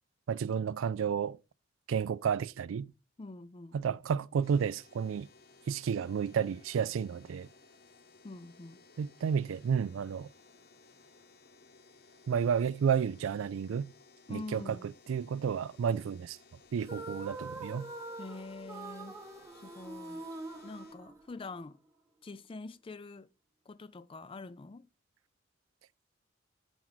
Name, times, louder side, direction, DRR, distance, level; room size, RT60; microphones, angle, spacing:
voice 1, 0.3-1.4 1.9-2.9 3.7-5.3 5.7-7.5 9.0-10.3 12.3-13.9 14.3-16.4 16.7-17.9, right 7 dB, 80° right, 0.3 m, -31 dB
voice 2, 3.2-3.8 8.2-8.8 14.3-14.9 18.2-19.2 19.5-20.3 20.6-21.8 22.2-23.3 23.7-24.9, left 3 dB, 25° left, 0.4 m, -45 dB
sound 1, 4.4-21.0, left 4 dB, 50° left, 1.0 m, -60 dB
sound 2, 16.8-21.6, right 2 dB, 15° right, 0.8 m, -44 dB
8.5 x 4.5 x 4.0 m
head